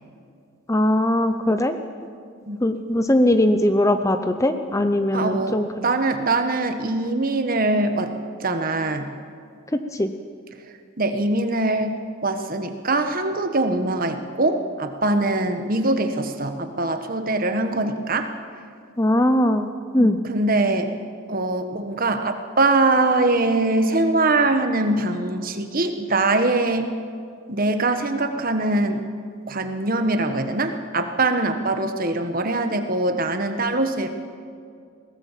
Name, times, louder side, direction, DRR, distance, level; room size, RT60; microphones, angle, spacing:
voice 1, 0.7-1.8 2.6-5.8 9.9-10.1 19.0-20.2, left 1 dB, 15° left, 8 dB, 0.6 m, -20 dB
voice 2, 5.1-5.6 5.8-8.1 8.4-9.1 11.0-18.3 20.0-20.9 21.3-26.9 27.5-29.0 29.5-34.1, right 2 dB, 40° right, 7 dB, 1.3 m, -22 dB
21.0 x 17.5 x 7.4 m, 2.3 s
head